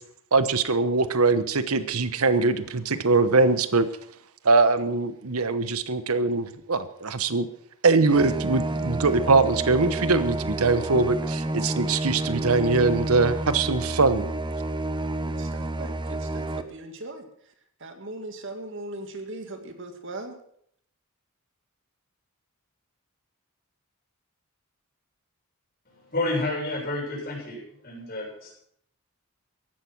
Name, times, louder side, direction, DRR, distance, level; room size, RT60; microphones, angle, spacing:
voice 1, 0.3-3.9 4.4-7.5 7.8-14.3, right 3 dB, 80° right, 12 dB, 1.1 m, -22 dB
sound 1, 8.1-16.6, right 2 dB, 20° right, 0.8 m, -29 dB
voice 2, 15.2-17.5 17.8-20.4, right 2 dB, 55° right, 6 dB, 2.2 m, -39 dB
voice 3, 26.1-28.5, left 2 dB, 45° left, -2 dB, 7.2 m, -30 dB
15.5 x 11.5 x 6.2 m, 0.67 s
head